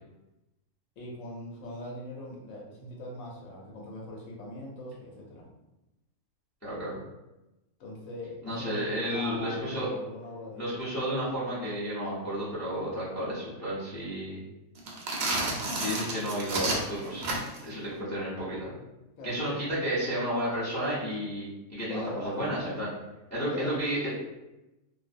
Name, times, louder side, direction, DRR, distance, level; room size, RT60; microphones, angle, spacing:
voice 1, 1.0-5.5 7.8-10.8 19.2-19.6 21.9-22.7 23.4-23.8, left 1 dB, 65° left, -2 dB, 0.9 m, -40 dB
voice 2, 6.6-7.0 8.4-9.9 10.6-14.4 15.7-17.2 17.6-18.7 19.2-22.9 23.3-24.1, equal, 20° left, -9 dB, 0.4 m, -32 dB
sound 1, 14.8-17.7, right 2 dB, 65° right, 0.7 m, -31 dB
2.4 x 2.0 x 2.5 m, 0.98 s
omnidirectional pair, 1.5 m